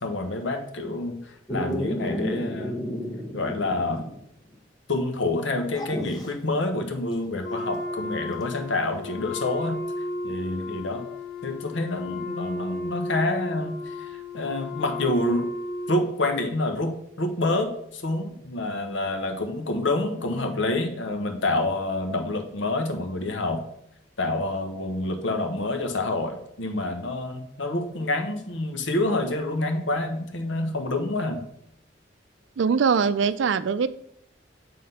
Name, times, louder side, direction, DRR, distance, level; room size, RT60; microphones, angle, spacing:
voice 1, 0.0-2.8 3.3-4.1 4.9-9.8 10.2-11.0 11.4-15.5 15.9-23.6 24.2-31.4, left 2 dB, 90° left, 5 dB, 1.1 m, -27 dB
Dog, 1.5-4.2 4.5-4.6 5.7-6.3 8.4-8.5, equal, 20° left, 1.0 m, -32 dB
Wind instrument woodwind instrument, 7.4-16.2, left 2 dB, 65° left, 1.6 m, -34 dB
voice 2, 32.6-33.9, right 6 dB, 80° right, 15 dB, 0.4 m, -22 dB
7.6 x 3.8 x 5.5 m, 0.74 s
head